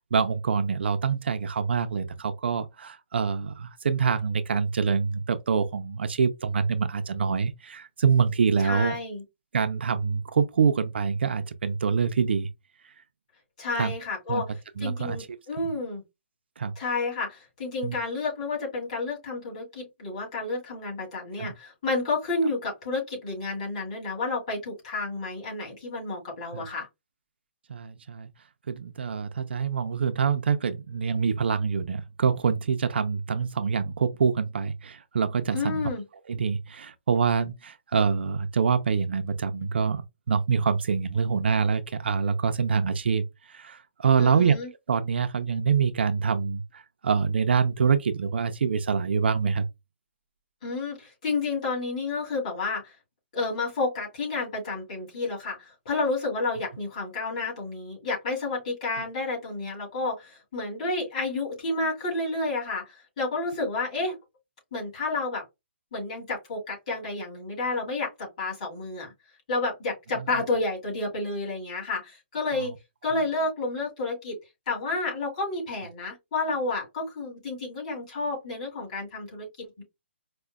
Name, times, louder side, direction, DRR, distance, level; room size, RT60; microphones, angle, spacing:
voice 1, 0.1-8.9 9.5-12.5 13.8-13.9 14.3-14.4 14.8-15.2 16.6-16.7 17.8-18.0 21.4-21.5 26.5-26.6 27.7-28.3 28.7-35.8 36.3-40.0 40.3-43.3 43.5-44.6 44.9-49.7, right 6 dB, 60° right, 0.4 m, -25 dB
voice 2, 8.6-9.2 13.6-16.0 16.8-26.9 35.5-36.0 44.2-44.7 50.6-53.0 53.3-64.2 64.7-65.4 65.9-69.1 69.5-72.7 73.0-74.4 74.7-79.8, left 3 dB, 35° left, 2.2 m, -30 dB
4.9 x 2.1 x 2.2 m
hypercardioid pair, 175°, 7 cm